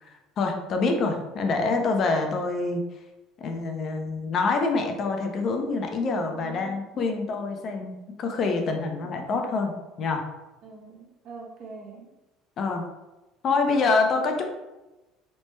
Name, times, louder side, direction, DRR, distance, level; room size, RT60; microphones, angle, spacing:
voice 1, 0.0-2.8 3.4-9.7 10.0-10.2 12.6-12.9 13.4-14.4, left 3 dB, 45° left, 4 dB, 0.5 m, -26 dB
voice 2, 6.1-6.7 10.6-12.1, right 5 dB, 60° right, 1 dB, 0.6 m, -43 dB
3.2 x 2.1 x 3.1 m, 1.0 s
supercardioid pair, 110°, 0 cm